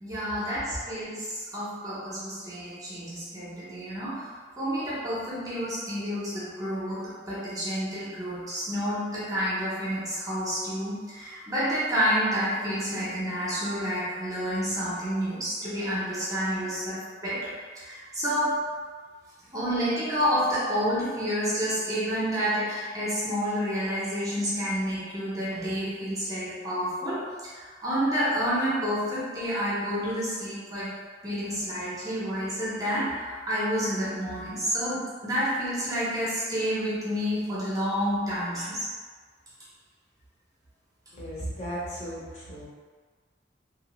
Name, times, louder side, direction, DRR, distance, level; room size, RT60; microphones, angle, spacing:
voice 1, 0.0-4.3 4.6-18.6 19.5-30.9 31.2-38.9, equal, 20° right, -9 dB, 0.6 m, -29 dB
voice 2, 41.1-42.6, right 1 dB, 35° left, -8 dB, 0.7 m, -35 dB
2.8 x 2.1 x 3.0 m, 1.5 s
head